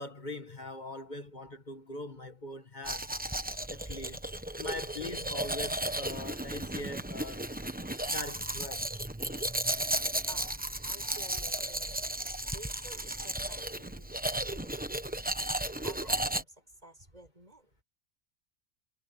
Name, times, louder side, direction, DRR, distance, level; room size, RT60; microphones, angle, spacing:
voice 1, 0.0-3.1 3.7-4.2 4.6-7.5 8.1-8.9, left 2 dB, 40° left, 2.0 m, -42 dB
Domestic sounds home sounds, 2.8-16.4, right 1 dB, 10° right, 1.0 m, -34 dB
voice 2, 10.8-12.0 12.5-14.2 14.5-14.7 15.8-16.5 16.8-17.7, right 1 dB, 35° right, 6.7 m, -51 dB
omnidirectional pair, 1.2 m